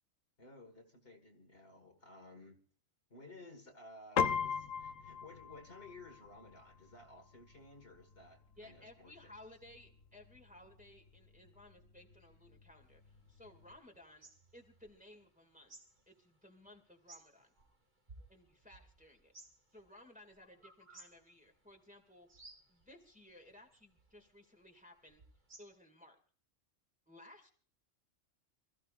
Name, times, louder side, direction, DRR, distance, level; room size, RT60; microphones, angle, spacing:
voice 1, 0.4-2.6 3.1-9.3, left 2 dB, 45° left, 4 dB, 2.1 m, -56 dB
Piano, 4.2-13.8, left 6 dB, 70° left, 1.3 m, -42 dB
voice 2, 8.6-15.8 16.1-17.5 18.3-19.3 19.7-22.3 22.7-25.2 25.6-26.2 27.1-27.5, left 1 dB, 5° right, 2 dB, 2.2 m, -58 dB
sound 1, 12.8-25.8, right 2 dB, 45° right, 2.6 m, -62 dB
27.5 x 14.5 x 2.5 m, 0.43 s
omnidirectional pair, 1.4 m